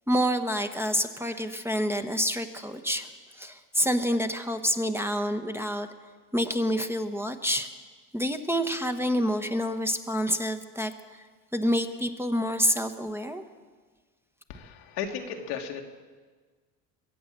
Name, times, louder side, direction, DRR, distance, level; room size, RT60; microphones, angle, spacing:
voice 1, 0.1-5.9 6.3-7.7 8.1-11.2 11.5-13.4, equal, 5° right, 6 dB, 1.1 m, -28 dB
voice 2, 14.5-15.8, left 7 dB, 80° left, 3 dB, 1.9 m, -35 dB
23.5 x 8.2 x 7.5 m, 1.5 s
supercardioid pair, 80°, 47 cm